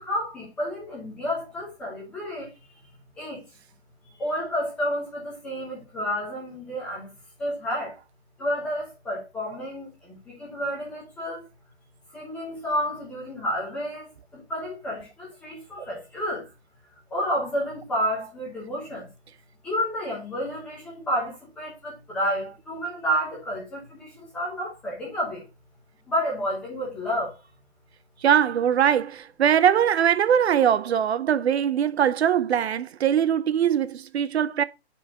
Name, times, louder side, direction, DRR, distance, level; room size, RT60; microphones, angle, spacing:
voice 1, 0.0-2.5 3.2-3.4 4.0-7.1 7.4-8.0 8.4-11.5 12.1-16.4 17.1-19.1 19.6-25.5 26.1-27.3, equal, 5° left, 0.8 m, -30 dB
voice 2, 28.2-34.6, right 9 dB, 75° right, 0.6 m, -21 dB
4.5 x 4.4 x 5.9 m
hypercardioid pair, 175°, 32 cm